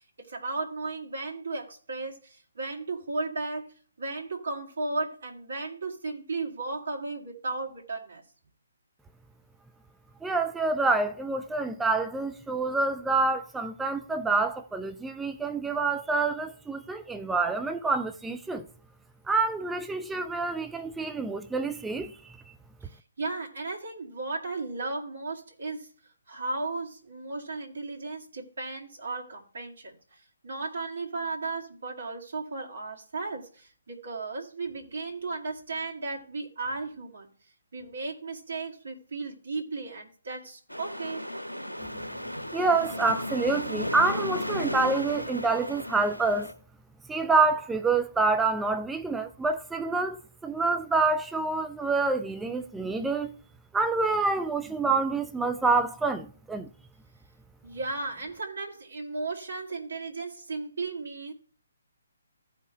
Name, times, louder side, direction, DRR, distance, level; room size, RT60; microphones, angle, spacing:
voice 1, 0.2-3.7 4.0-8.2 22.8-25.9 26.3-30.0 30.4-37.3 37.7-41.3 57.6-61.3, right 3 dB, 55° right, 2.1 m, -35 dB
voice 2, 10.2-18.7 19.3-22.2 42.5-46.5 47.1-53.3 53.7-56.7, right 3 dB, 5° right, 0.3 m, -27 dB
sound 1, 40.7-46.5, left 1 dB, 85° left, 1.3 m, -34 dB
15.0 x 5.2 x 3.3 m
figure-of-eight pair, 135°, 0 cm